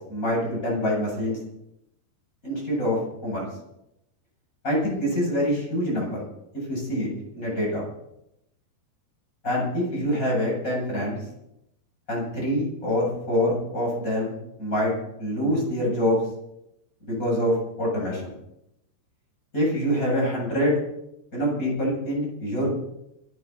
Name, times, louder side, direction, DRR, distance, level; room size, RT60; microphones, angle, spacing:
voice 1, 0.1-1.4 2.4-3.5 4.6-6.2 6.7-7.8 9.4-11.2 12.1-14.3 14.6-14.9 15.2-16.2 17.0-18.3 19.5-20.8 21.3-22.7, equal, 20° left, -3 dB, 8.2 m, -25 dB
26.5 x 12.0 x 4.2 m, 0.83 s
omnidirectional pair, 4.8 m